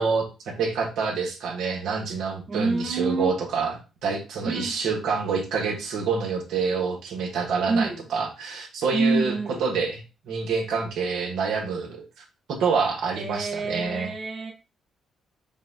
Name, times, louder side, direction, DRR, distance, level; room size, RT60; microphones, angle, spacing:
voice 1, 0.0-9.3 9.6-12.0 12.5-14.1, right 5 dB, 80° right, 1.1 m, -27 dB
voice 2, 2.5-3.3 4.4-4.7 7.7-8.0 8.9-9.6 13.2-14.5, right 3 dB, 35° right, 0.7 m, -27 dB
5.3 x 2.2 x 2.7 m
cardioid pair, 90°, 0 cm